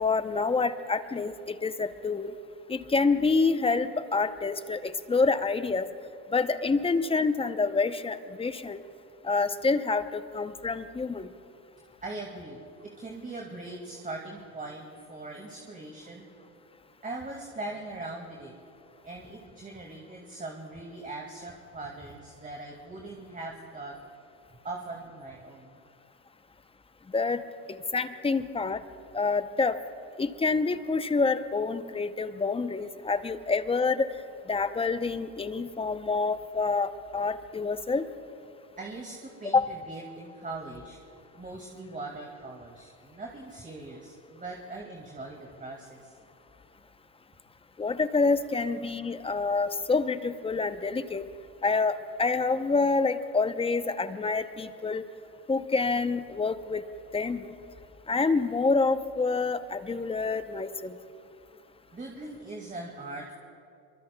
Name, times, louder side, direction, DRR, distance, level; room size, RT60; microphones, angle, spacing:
voice 1, 0.0-2.3 2.7-5.9 6.3-8.8 9.2-11.3 27.1-27.4 27.7-28.8 29.1-29.8 30.2-34.1 34.5-38.0 39.5-39.7 47.8-51.2 51.6-55.0 55.5-56.8 57.1-57.6 58.1-60.9, left 4 dB, 15° left, 11 dB, 0.7 m, -27 dB
voice 2, 12.0-16.3 17.0-18.5 19.0-24.0 24.6-25.8 38.8-41.0 41.3-46.2 61.9-63.3, right 2 dB, 20° right, 0 dB, 2.2 m, -41 dB
26.5 x 24.0 x 2.3 m, 2.6 s
hypercardioid pair, 90°, 43 cm